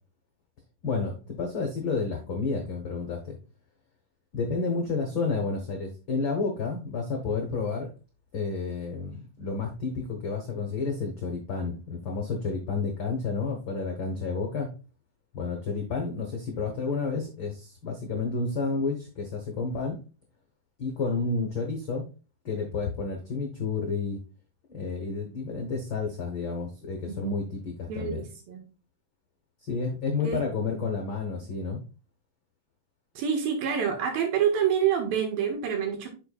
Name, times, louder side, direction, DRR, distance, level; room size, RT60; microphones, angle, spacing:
voice 1, 0.8-3.4 4.3-7.9 8.3-14.7 15.3-20.0 20.8-22.0 22.4-24.2 24.7-28.3 29.6-31.8, left 4 dB, 75° left, 3 dB, 1.1 m, -30 dB
voice 2, 27.1-27.4 27.9-28.6 30.2-30.4 30.7-30.8 33.2-36.1, right 8 dB, 80° right, 4 dB, 3.3 m, -27 dB
7.9 x 6.2 x 2.3 m, 0.33 s
omnidirectional pair, 4.1 m